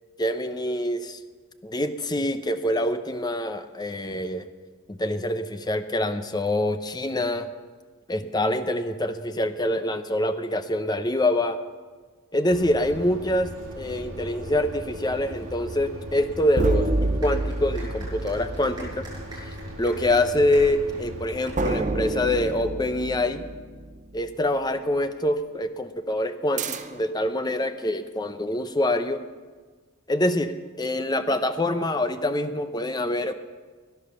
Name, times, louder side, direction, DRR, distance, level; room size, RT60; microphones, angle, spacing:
voice 1, 0.2-1.2 1.6-4.5 4.9-7.5 8.1-11.6 12.3-13.5 13.8-19.0 19.4-23.4 24.1-29.2 30.1-33.3, left 1 dB, 20° left, 9 dB, 0.7 m, -25 dB
sound 1, 12.5-21.8, equal, 70° right, 3.2 m, -38 dB
sound 2, 16.6-19.3 21.6-24.2 26.6-27.2, right 2 dB, 35° right, 0.8 m, -28 dB
sound 3, 17.2-23.2, right 2 dB, 20° right, 6.3 m, -45 dB
16.0 x 10.5 x 7.0 m, 1.4 s
head